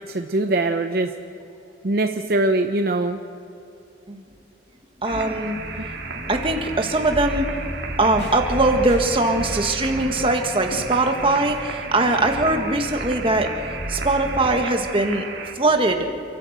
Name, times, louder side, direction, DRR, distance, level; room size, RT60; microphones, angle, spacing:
voice 1, 0.1-1.1 1.8-3.2, right 2 dB, 50° right, 5 dB, 0.7 m, -22 dB
voice 2, 5.0-5.6 6.1-7.6 8.0-13.5 13.9-15.2 15.5-16.1, right 2 dB, 30° right, 4 dB, 1.6 m, -21 dB
sound 1, 5.0-15.5, right 5 dB, 70° right, 2.5 m, -35 dB
sound 2, 5.3-14.5, equal, 20° left, 5.0 m, -35 dB
sound 3, 8.1-11.0 11.3-12.4, left 1 dB, 60° left, 2.5 m, -38 dB
28.5 x 11.5 x 8.0 m, 2.8 s
head